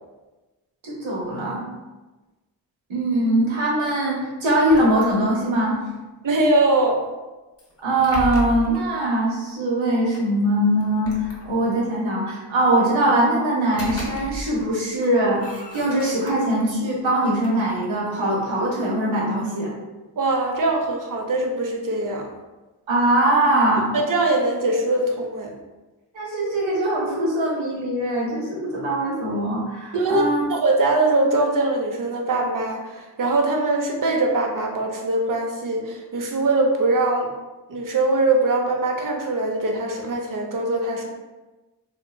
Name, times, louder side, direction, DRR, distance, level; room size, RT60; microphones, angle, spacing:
voice 1, 0.8-1.7 2.9-5.8 7.8-15.4 15.7-19.7 22.9-23.9 26.1-30.5, right 1 dB, 85° right, -4 dB, 0.9 m, -22 dB
sound 1, 4.5-5.6 7.6-8.9 10.1-10.2 10.8-11.9 13.5-14.7 15.0-16.7 17.1-18.8, equal, 30° left, 0.7 m, -35 dB
voice 2, 6.2-7.0 20.2-22.3 23.9-25.5 29.9-37.3 37.7-41.1, right 2 dB, 45° right, 2 dB, 0.6 m, -22 dB
2.7 x 2.6 x 2.2 m, 1.2 s
cardioid pair, 40°, 46 cm